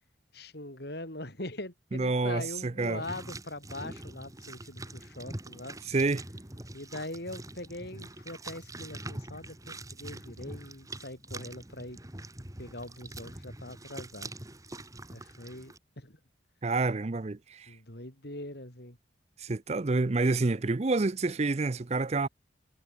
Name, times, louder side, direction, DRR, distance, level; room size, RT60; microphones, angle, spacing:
voice 1, 0.3-5.8 6.7-12.0 12.6-14.3 15.1-16.2 17.7-19.0, left 1 dB, 55° left, 4.7 m, -42 dB
voice 2, 1.9-3.0 5.9-6.2 16.6-17.8 19.4-22.3, right 3 dB, 35° right, 0.6 m, -28 dB
sound 1, 2.8-15.8, right 2 dB, 20° right, 2.1 m, -44 dB
head